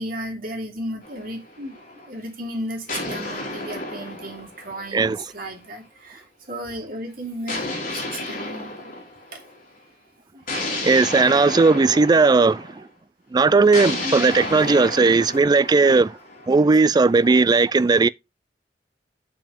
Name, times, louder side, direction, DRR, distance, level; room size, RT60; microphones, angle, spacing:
voice 1, 0.0-7.6 7.9-8.9 9.3-9.4 10.3-10.4 10.8-10.9 14.0-14.8, right 1 dB, 55° right, 2.6 m, -34 dB
sound 1, 1.0-2.1 2.9-5.5 7.5-9.6 10.5-12.8 13.7-17.5, left 2 dB, 50° left, 3.2 m, -32 dB
voice 2, 4.9-5.2 10.8-12.8 13.3-16.2 16.5-18.1, right 4 dB, 25° right, 0.3 m, -17 dB
6.9 x 5.8 x 3.6 m
head